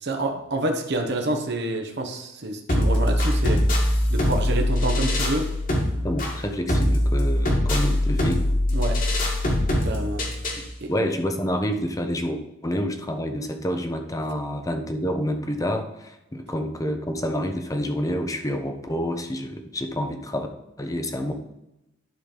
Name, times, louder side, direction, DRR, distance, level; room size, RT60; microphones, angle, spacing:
voice 1, 0.0-3.6 4.1-5.5 8.7-9.0 9.8-10.2 10.8-10.9, right 2 dB, 55° right, 3 dB, 1.2 m, -27 dB
sound 1, 2.7-10.7, left 1 dB, 40° left, 1.9 m, -22 dB
voice 2, 6.0-8.4 10.9-20.5 20.8-21.3, equal, 15° left, 5 dB, 0.9 m, -28 dB
11.5 x 4.0 x 5.2 m, 0.89 s
head